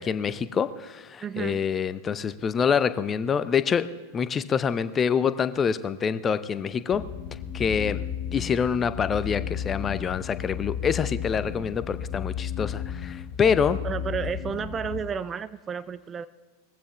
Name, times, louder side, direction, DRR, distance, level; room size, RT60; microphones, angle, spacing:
voice 1, 0.0-3.9 4.1-7.0 7.5-8.0 8.3-13.8, left 6 dB, 20° left, 14 dB, 0.6 m, -26 dB
voice 2, 1.2-1.6 13.8-16.3, right 7 dB, 20° right, 15 dB, 0.4 m, -32 dB
sound 1, 6.9-15.0, left 9 dB, 45° left, 1.2 m, -34 dB
20.0 x 15.0 x 3.0 m, 1.3 s
figure-of-eight pair, 90°, 0 cm